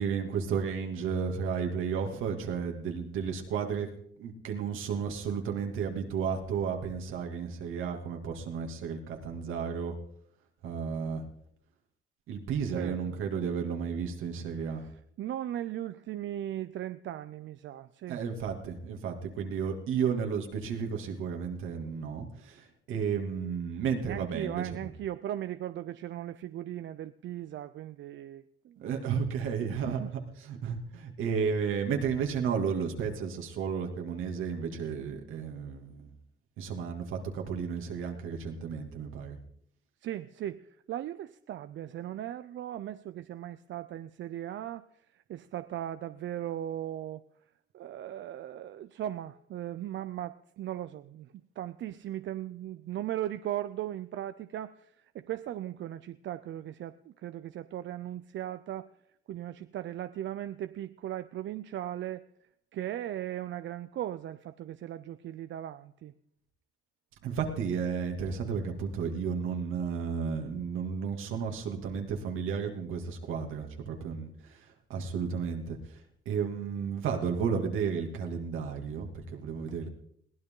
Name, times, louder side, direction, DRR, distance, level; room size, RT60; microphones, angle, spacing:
voice 1, 0.0-3.9 4.2-9.9 10.6-11.2 12.3-14.8 18.1-24.9 28.8-30.0 30.4-36.1 36.6-39.4 67.2-76.0 76.3-79.9, right 6 dB, 90° right, 3 dB, 2.6 m, -33 dB
voice 2, 12.7-13.2 14.6-18.2 24.1-28.8 29.7-30.1 40.0-47.2 47.7-58.9 59.3-62.3 62.7-66.1, right 12 dB, 70° right, 12 dB, 0.6 m, -38 dB
21.5 x 16.5 x 3.9 m, 0.71 s
cardioid pair, 90°, 20 cm